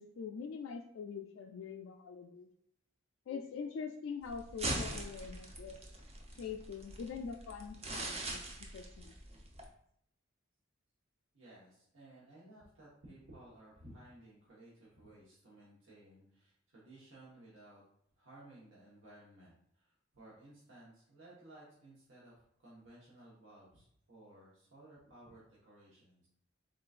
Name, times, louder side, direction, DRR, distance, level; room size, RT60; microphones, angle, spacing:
voice 1, 0.0-2.5 3.3-5.8 6.3-8.4 8.7-9.1, left 6 dB, 80° left, 3 dB, 0.3 m, -44 dB
sound 1, 4.2-9.6, right 2 dB, 30° right, 0.6 m, -42 dB
voice 2, 11.3-17.8 18.2-26.3, right 1 dB, 75° right, -8 dB, 1.1 m, -57 dB
3.8 x 3.7 x 2.4 m, 0.71 s
head